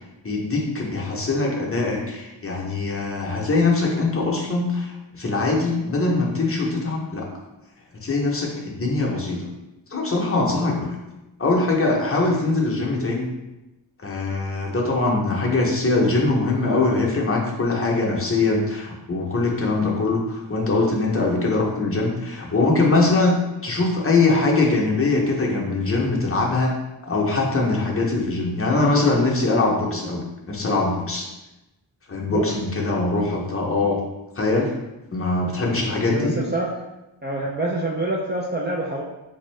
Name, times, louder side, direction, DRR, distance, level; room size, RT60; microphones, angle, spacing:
voice 1, 0.2-7.3 8.0-9.5 9.9-10.9 11.4-13.3 14.0-23.3 23.6-26.7 27.1-30.2 30.5-31.3 32.1-34.0 34.4-34.7 35.1-36.3, left 3 dB, 30° left, -2 dB, 0.7 m, -22 dB
voice 2, 36.0-36.7 37.2-39.0, right 2 dB, 25° right, -4 dB, 0.4 m, -26 dB
3.6 x 2.6 x 3.1 m, 0.98 s
wide cardioid pair, 115°, 46 cm